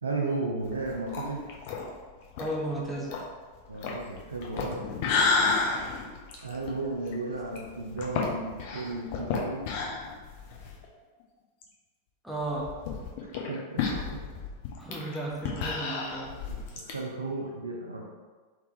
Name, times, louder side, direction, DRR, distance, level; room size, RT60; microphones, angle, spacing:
voice 1, 0.0-1.4 3.7-4.9 6.4-9.6 13.5-14.2 16.5-18.1, right 3 dB, 75° right, -1 dB, 0.4 m, -34 dB
sound 1, 0.6-10.9 11.2-11.3 11.6-11.7 12.4-16.9, left 4 dB, 50° left, 0.5 m, -32 dB
voice 2, 2.4-3.2 12.2-12.8 14.8-16.4, right 1 dB, ahead, -5 dB, 0.6 m, -34 dB
3.3 x 2.9 x 2.6 m, 1.4 s
figure-of-eight pair, 90°, 0 cm